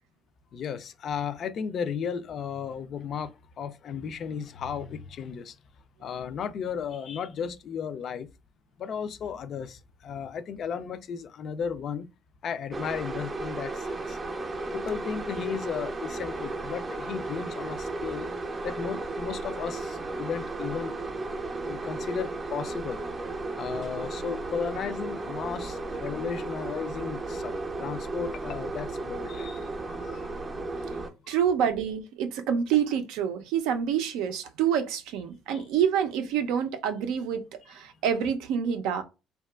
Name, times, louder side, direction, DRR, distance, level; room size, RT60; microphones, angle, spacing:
voice 1, 0.5-5.6 6.0-8.3 8.8-12.1 12.4-14.2 14.7-18.3 18.6-21.0 21.6-23.0 23.6-30.3 31.2-31.4 35.5-35.6, left 7 dB, 50° left, 0.3 m, -35 dB
sound 1, 12.7-31.1, right 2 dB, 30° right, 0.5 m, -34 dB
voice 2, 31.3-39.0, right 8 dB, 85° right, 0.4 m, -27 dB
2.8 x 2.2 x 2.2 m
cardioid pair, 105°, 0 cm